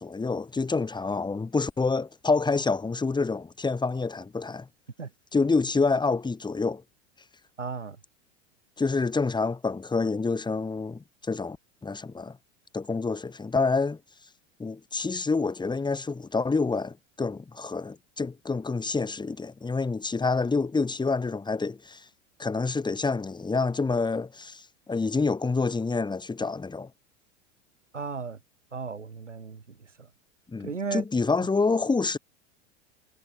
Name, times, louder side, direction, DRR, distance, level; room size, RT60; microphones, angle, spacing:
voice 1, 0.0-4.7 5.3-6.8 8.8-11.6 11.8-12.4 12.7-14.0 14.6-22.0 22.4-26.9 30.5-32.2, left 4 dB, 10° left, 3.1 m, -27 dB
voice 2, 7.6-8.0 27.9-28.4 28.7-30.1 30.6-31.0, right 5 dB, 90° right, 6.0 m, -35 dB
hypercardioid pair, 90°, 35 cm